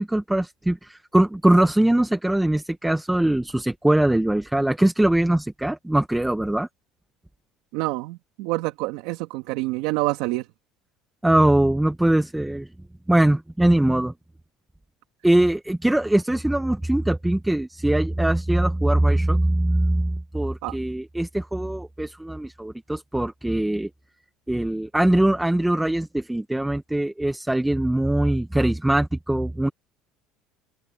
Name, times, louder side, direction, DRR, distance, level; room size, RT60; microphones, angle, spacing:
voice 1, 0.0-6.7 11.2-12.7 13.1-14.1 15.2-23.9 24.5-29.7, right 1 dB, 5° right, 0.6 m, -22 dB
voice 2, 7.7-10.5 20.6-20.8, right 20 dB, 75° right, 1.9 m, -27 dB
open air
cardioid pair, 130°, 0 cm